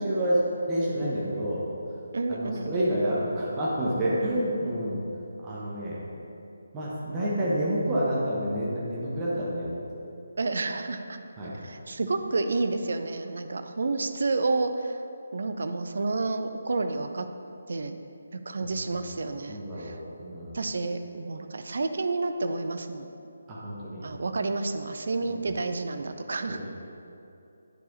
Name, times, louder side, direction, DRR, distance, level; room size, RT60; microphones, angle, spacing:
voice 1, 0.0-1.7 2.3-5.0 5.4-6.0 6.7-9.8 11.4-11.5 18.6-18.9 19.5-20.5 23.5-24.1 25.2-25.4 26.5-26.6, equal, 20° right, -8 dB, 1.1 m, -29 dB
voice 2, 2.1-3.0 10.4-11.2 11.6-15.0 15.3-17.3 17.7-18.0 18.3-20.0 20.5-23.1 24.0-26.6, right 3 dB, 55° right, 8 dB, 0.5 m, -30 dB
9.9 x 4.7 x 4.0 m, 2.7 s
figure-of-eight pair, 150°, 0 cm